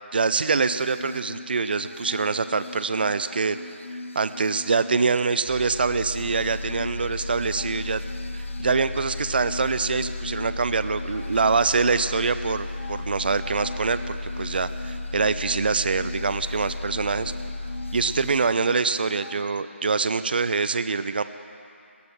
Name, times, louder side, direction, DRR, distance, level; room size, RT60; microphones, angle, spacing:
voice 1, 0.1-3.6 4.1-8.0 8.3-17.3 17.9-21.2, right 4 dB, 50° right, 13 dB, 0.5 m, -25 dB
sound 1, 0.5-19.4, left 2 dB, 75° left, 0.5 m, -40 dB
sound 2, 5.4-18.6 18.9-19.1, left 2 dB, 40° left, 3.6 m, -34 dB
18.5 x 11.5 x 6.3 m, 2.5 s
figure-of-eight pair, 160°, 7 cm